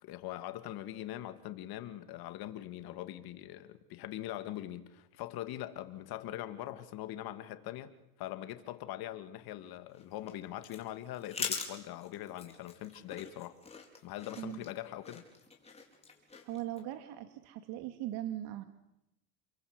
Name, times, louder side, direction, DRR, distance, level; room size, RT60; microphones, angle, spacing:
voice 1, 0.0-13.5 14.0-15.2, left 13 dB, 50° left, 2.6 m, -42 dB
sound 1, 9.9-16.8, left 4 dB, 15° left, 4.8 m, -44 dB
voice 2, 16.4-18.6, right 13 dB, 55° right, 2.4 m, -39 dB
29.5 x 23.0 x 8.3 m
supercardioid pair, 130°, 47 cm